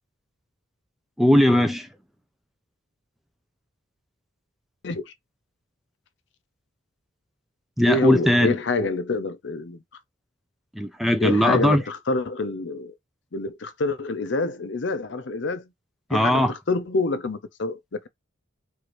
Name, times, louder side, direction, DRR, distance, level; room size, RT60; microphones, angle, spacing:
voice 1, 1.2-1.9 7.8-8.9 10.8-11.8 16.1-16.5, equal, ahead, 0.4 m, -19 dB
voice 2, 7.9-9.8 11.2-12.9 13.3-15.7 16.1-17.8, left 3 dB, 60° left, 0.6 m, -26 dB
4.7 x 2.6 x 3.0 m
head